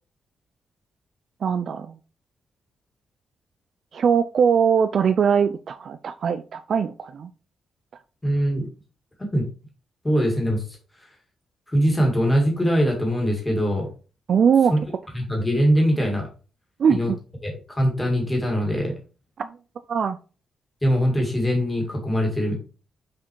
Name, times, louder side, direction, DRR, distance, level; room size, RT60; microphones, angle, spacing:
voice 1, 1.4-1.9 3.9-7.3 14.3-14.7 16.8-17.2 19.4-19.5 19.9-20.2, right 7 dB, 45° right, 11 dB, 0.4 m, -21 dB
voice 2, 8.2-8.7 9.3-9.4 10.0-10.6 11.7-13.9 14.7-14.8 15.1-16.3 16.9-17.1 17.4-18.9 20.8-22.5, equal, 10° left, 0 dB, 2.1 m, -22 dB
5.8 x 4.8 x 4.6 m, 0.36 s
wide cardioid pair, 180°, 0 cm